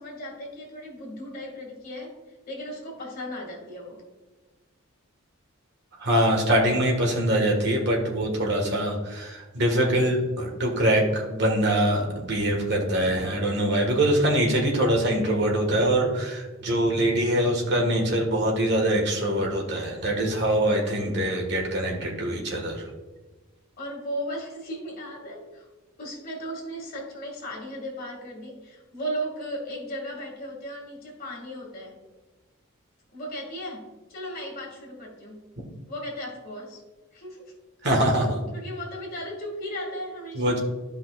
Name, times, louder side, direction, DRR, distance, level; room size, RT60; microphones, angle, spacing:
voice 1, 0.0-2.2 2.5-4.0 23.8-25.7 26.0-32.0 33.1-35.4 35.9-36.8 37.1-37.5 38.5-40.6, equal, 45° left, -2 dB, 2.2 m, -36 dB
voice 2, 6.0-22.9 37.8-38.4 40.3-40.6, right 1 dB, 50° right, 0 dB, 1.6 m, -23 dB
13.0 x 5.4 x 2.4 m, 1.2 s
head